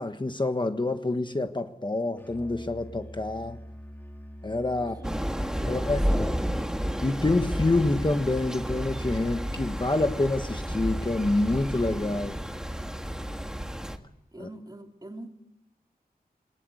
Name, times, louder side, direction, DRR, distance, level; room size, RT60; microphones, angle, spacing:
voice 1, 0.0-3.6 4.4-4.9 5.7-6.4 7.0-12.4 14.4-14.5, left 2 dB, 30° left, 7 dB, 1.4 m, -27 dB
Musical instrument, 2.2-14.0, equal, 15° left, 2.2 m, -44 dB
voice 2, 4.8-6.3 14.3-15.3, right 1 dB, 25° right, 3 dB, 2.7 m, -45 dB
Thunder / Rain, 5.0-14.0, equal, 5° right, 1.6 m, -31 dB
22.0 x 19.0 x 8.0 m, 0.86 s
wide cardioid pair, 95°, 16 cm